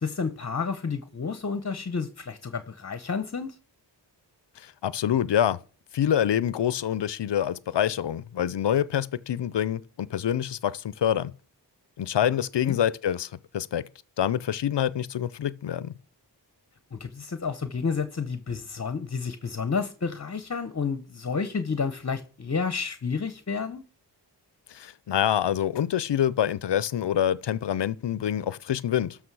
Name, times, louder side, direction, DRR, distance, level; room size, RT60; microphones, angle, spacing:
voice 1, 0.0-3.5 12.7-12.8 16.9-23.8, left 5 dB, 35° left, 0.9 m, -30 dB
voice 2, 4.6-5.6 5.9-11.3 12.0-13.9 14.2-15.9 24.7-29.2, left 10 dB, 70° left, 0.6 m, -26 dB
12.5 x 6.1 x 4.7 m
cardioid pair, 40°, 43 cm